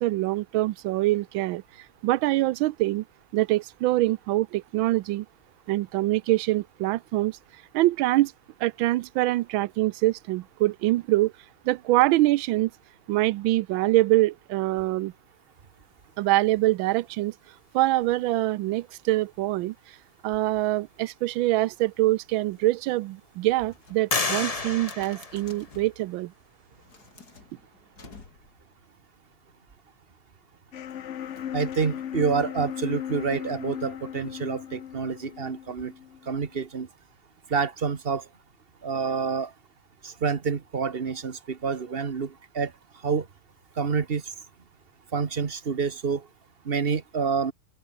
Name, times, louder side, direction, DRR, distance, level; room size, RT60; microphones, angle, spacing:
voice 1, 0.0-1.6 2.0-3.0 3.3-5.3 5.7-7.4 7.7-8.3 8.6-11.3 11.6-12.7 13.1-15.1 16.2-17.3 17.7-20.0 20.2-26.3, right 17 dB, 75° right, 1.3 m, -24 dB
sound 1, 21.8-21.9 22.5-23.2 24.1-26.0, left 3 dB, 20° left, 1.2 m, -31 dB
sound 2, 23.7-26.0 26.7-28.7, left 4 dB, 45° left, 3.2 m, -50 dB
sound 3, 30.7-36.6, left 10 dB, 80° left, 0.6 m, -37 dB
voice 2, 31.5-35.9 36.3-36.9 37.5-38.2 38.8-39.5 40.0-42.7 43.0-43.2 43.8-44.2 45.1-46.2 46.6-47.5, right 5 dB, 35° right, 1.1 m, -28 dB
open air
omnidirectional pair, 2.3 m